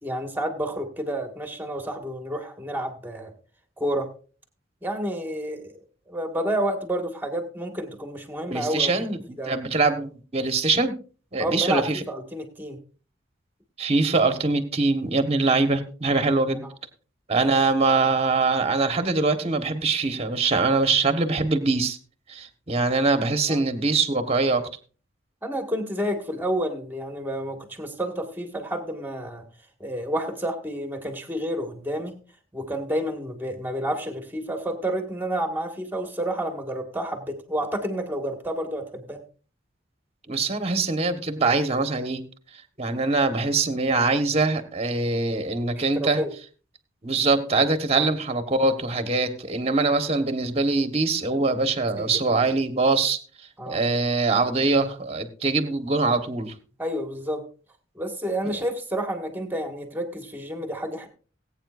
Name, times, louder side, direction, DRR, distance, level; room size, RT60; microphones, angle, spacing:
voice 1, 0.0-3.3 3.8-4.1 4.8-5.7 6.1-9.0 9.3-9.6 11.4-12.8 16.6-16.7 17.4-17.6 23.5-23.6 25.4-29.4 29.8-32.2 32.5-39.2 45.8-46.3 47.9-48.1 52.0-52.2 53.6-53.8 56.8-57.4 58.0-61.1, right 1 dB, 10° right, 4 dB, 1.8 m, -30 dB
voice 2, 8.5-11.0 11.3-12.0 13.8-16.6 17.3-22.0 22.3-24.6 40.3-42.2 42.8-46.2 47.0-53.2 53.6-56.5 58.4-58.6, right 3 dB, 35° right, 7 dB, 1.3 m, -23 dB
20.0 x 8.9 x 2.6 m, 0.38 s
head